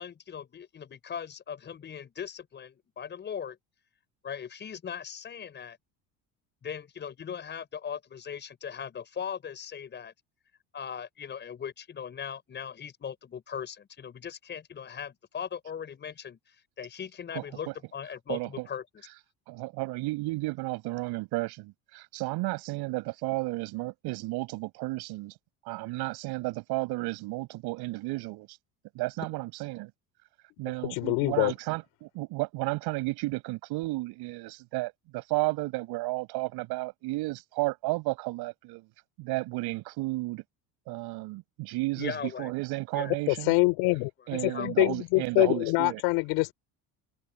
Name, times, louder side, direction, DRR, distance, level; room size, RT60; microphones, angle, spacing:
voice 1, 0.0-3.6 4.2-5.8 6.6-10.1 10.7-19.1 42.0-42.5 42.9-43.2 44.2-44.7, left 7 dB, 25° left, 6.7 m, -39 dB
voice 2, 17.3-17.7 18.3-18.7 19.0-19.2 19.5-25.3 25.7-28.5 28.9-29.9 30.6-38.8 39.2-40.4 40.9-43.5 44.3-46.0, right 22 dB, 65° right, 6.5 m, -33 dB
voice 3, 30.8-31.5 43.3-44.1 44.4-46.5, left 25 dB, 85° left, 4.3 m, -25 dB
cardioid pair, 170°, 41 cm